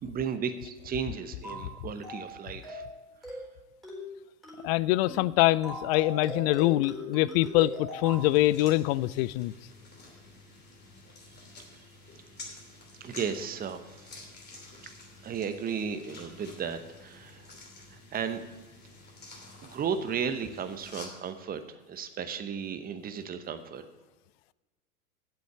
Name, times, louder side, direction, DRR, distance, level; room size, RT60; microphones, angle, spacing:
voice 1, 0.0-2.8 3.3-3.4 13.0-14.1 15.2-17.5 17.9-18.4 19.6-23.9, right 7 dB, 20° right, 9 dB, 0.8 m, -34 dB
sound 1, 1.4-1.7 2.0-2.3 2.6-2.9 3.2-3.5 3.8-4.1 4.4-4.7 5.0-5.3 5.6-8.3, left 1 dB, ahead, 3.8 m, -40 dB
voice 2, 4.6-9.5, left 17 dB, 45° left, 20 dB, 0.4 m, -24 dB
sound 2, 8.0-21.1, left 2 dB, 20° left, 2.8 m, -50 dB
8.0 x 7.9 x 8.3 m, 1.2 s
hypercardioid pair, 95°, 45 cm